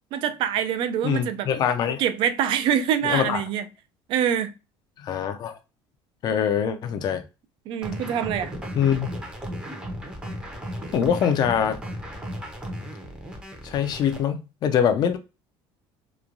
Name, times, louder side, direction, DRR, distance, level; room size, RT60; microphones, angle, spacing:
voice 1, 0.1-1.5 2.0-3.6 4.1-4.5 7.7-8.5, right 9 dB, 55° right, 0.4 m, -25 dB
voice 2, 1.0-2.0 3.0-3.4 5.0-5.6 6.2-7.2 8.8-9.1 10.9-11.8 13.6-15.2, left 8 dB, 40° left, 0.5 m, -23 dB
sound 1, 7.8-14.2, equal, 10° right, 0.6 m, -35 dB
3.0 x 2.2 x 2.4 m
cardioid pair, 135°, 10 cm